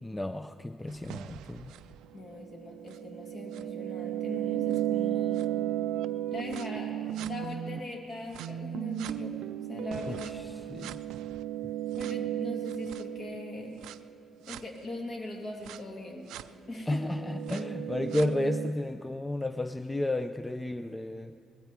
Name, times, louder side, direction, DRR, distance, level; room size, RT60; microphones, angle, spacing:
voice 1, 0.0-1.7 10.1-10.4 10.7-11.0 16.9-21.4, left 1 dB, 10° left, 10 dB, 0.4 m, -32 dB
sound 1, 0.9-7.8 8.3-14.0 14.5-14.6 15.7-15.8 16.3-16.4 16.9-18.7, right 12 dB, 90° right, 0.3 m, -34 dB
voice 2, 2.1-5.5 6.3-10.5 11.9-13.8 14.5-16.3 16.7-17.0, left 2 dB, 45° left, 1 dB, 2.5 m, -40 dB
19.0 x 13.0 x 4.8 m, 2.6 s
cardioid pair, 90°, 0 cm